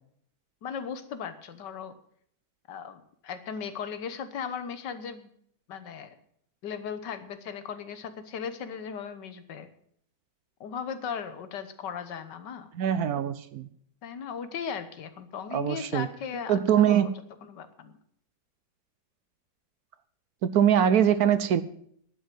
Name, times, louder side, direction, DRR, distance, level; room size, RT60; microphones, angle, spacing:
voice 1, 0.6-2.0 2.7-5.3 5.7-6.2 6.6-9.7 10.6-12.7 14.0-17.1 17.5-17.9, left 7 dB, 80° left, 11 dB, 1.7 m, -37 dB
voice 2, 12.7-13.7 15.5-16.1 16.5-17.1 20.4-21.6, right 9 dB, 65° right, 14 dB, 1.1 m, -23 dB
11.0 x 7.9 x 7.7 m, 0.66 s
omnidirectional pair, 1.9 m